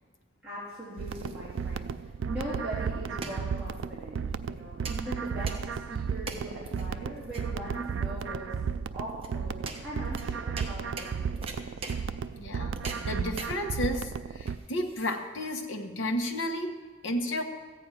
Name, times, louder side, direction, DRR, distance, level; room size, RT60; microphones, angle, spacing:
voice 1, 0.4-8.5 8.9-11.8, right 1 dB, 5° right, -12 dB, 3.3 m, -40 dB
sound 1, 0.6-15.6, right 3 dB, 30° right, 1.0 m, -45 dB
sound 2, 1.0-14.6, right 6 dB, 80° right, 0.4 m, -34 dB
voice 2, 12.4-17.4, left 1 dB, 75° left, 4 dB, 1.2 m, -33 dB
14.5 x 8.9 x 4.8 m, 1.4 s
head